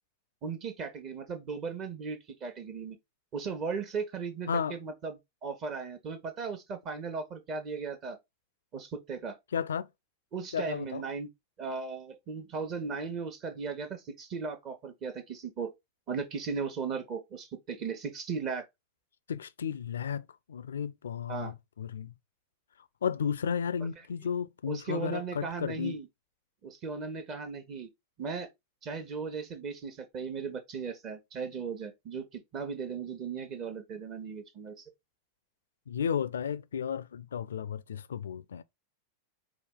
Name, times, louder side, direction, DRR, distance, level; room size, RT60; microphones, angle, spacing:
voice 1, 0.4-3.0 3.3-8.2 8.7-9.4 10.3-11.3 11.6-15.7 16.1-18.6 21.3-21.5 24.7-26.1 26.6-27.9 28.2-28.5 28.8-34.8, right 5 dB, 35° right, 1.0 m, -37 dB
voice 2, 4.5-4.8 9.5-9.9 10.5-11.0 19.3-22.1 23.0-26.0 35.9-38.6, left 7 dB, 65° left, 0.4 m, -33 dB
4.9 x 2.4 x 3.6 m
figure-of-eight pair, 90°, 0 cm